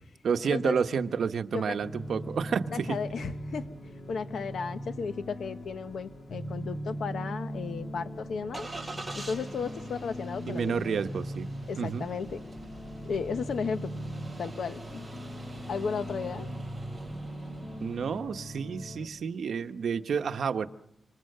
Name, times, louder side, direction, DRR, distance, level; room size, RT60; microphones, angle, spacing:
voice 1, 0.2-2.9 10.5-11.5 11.8-12.1 17.8-20.7, right 6 dB, 75° right, 8 dB, 1.0 m, -30 dB
sound 1, 1.8-19.1, equal, 55° left, 2.9 m, -40 dB
voice 2, 2.7-8.7 9.1-11.0 11.7-12.4 13.0-13.9 14.4-15.1 15.7-16.5, left 5 dB, 80° left, 9 dB, 1.1 m, -34 dB
Engine starting, 7.5-18.2, right 2 dB, 10° right, 6.8 m, -46 dB
27.0 x 25.0 x 6.7 m, 0.77 s
wide cardioid pair, 150°, 0 cm